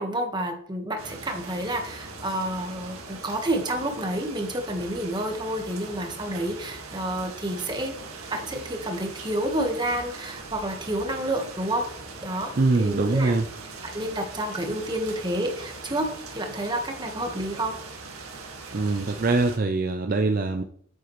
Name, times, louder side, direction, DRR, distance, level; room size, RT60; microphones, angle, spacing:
voice 1, 0.0-7.9 8.3-11.8 12.2-12.5 12.8-13.4 13.8-17.8, right 1 dB, 20° right, 4 dB, 1.3 m, -29 dB
sound 1, 1.0-19.6, right 3 dB, 80° right, 1.9 m, -41 dB
voice 2, 12.6-13.5 18.7-20.6, right 3 dB, 40° right, 6 dB, 0.5 m, -23 dB
8.8 x 8.2 x 3.1 m, 0.63 s
head